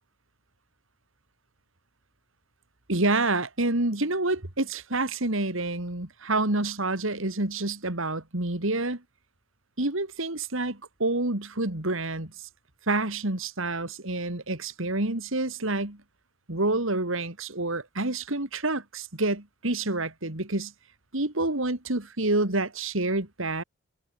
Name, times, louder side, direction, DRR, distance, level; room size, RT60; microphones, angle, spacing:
voice 1, 2.9-9.0 9.8-12.3 12.9-16.0 16.5-20.7 21.1-23.6, right 2 dB, 65° right, 2.8 m, -28 dB
head